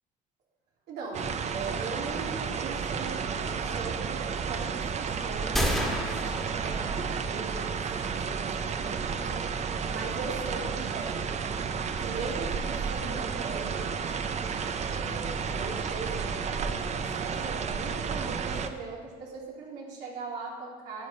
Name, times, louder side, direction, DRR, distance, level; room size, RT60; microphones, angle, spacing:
voice 1, 0.9-6.3 6.6-9.4 9.9-11.4 12.0-14.2 14.8-21.1, right 3 dB, 80° right, -3 dB, 2.8 m, -40 dB
sound 1, 1.1-18.7, right 6 dB, 40° right, 0.7 m, -32 dB
sound 2, 5.6-7.4, equal, ahead, 1.6 m, -31 dB
9.9 x 9.0 x 5.4 m, 1.4 s
cardioid pair, 110°, 17 cm